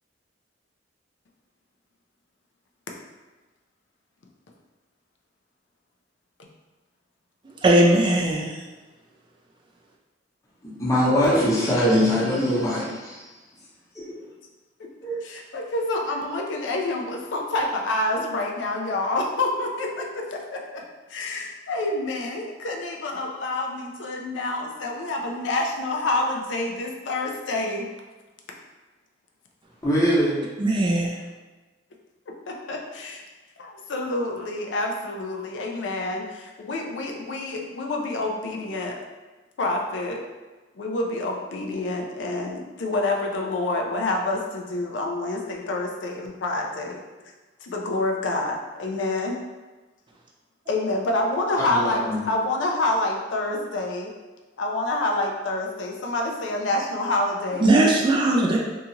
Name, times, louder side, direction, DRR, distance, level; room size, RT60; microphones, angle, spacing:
voice 1, 7.6-8.6 30.6-31.2 57.6-58.6, right 1 dB, 25° right, -2 dB, 0.3 m, -19 dB
voice 2, 10.6-13.3 13.9-14.3 15.0-15.2 29.8-30.6 51.7-52.2, equal, 20° left, -8 dB, 0.6 m, -22 dB
voice 3, 15.2-20.8 21.1-27.9 32.5-33.2 33.6-39.0 39.6-40.2 40.8-47.0 47.6-49.4 50.7-54.1 54.6-57.7, left 2 dB, 75° left, 1 dB, 0.4 m, -27 dB
2.7 x 2.4 x 2.8 m, 1.2 s
head